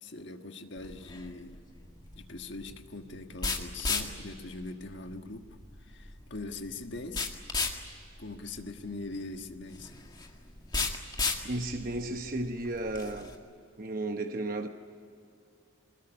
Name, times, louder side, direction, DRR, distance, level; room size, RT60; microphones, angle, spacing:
voice 1, 0.0-1.6 2.1-5.5 5.8-7.3 8.2-9.9, left 2 dB, 55° left, 1.5 m, -42 dB
sound 1, 0.8-13.4, left 4 dB, 20° left, 1.9 m, -36 dB
voice 2, 11.4-13.3 13.8-14.7, right 2 dB, 40° right, 1.0 m, -33 dB
23.5 x 20.5 x 10.0 m
head